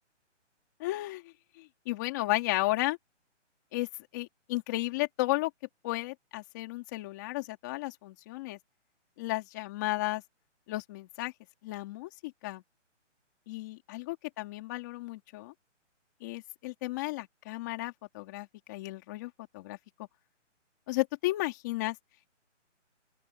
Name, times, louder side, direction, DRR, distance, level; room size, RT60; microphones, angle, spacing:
voice 1, 0.8-3.0 3.7-3.9 4.1-5.5 5.8-8.6 9.2-10.2 10.7-11.3 11.6-12.6 13.5-15.5 16.2-19.8 20.9-22.0, left 19 dB, 15° left, 3.7 m, -34 dB
open air
hypercardioid pair, 180°, 37 cm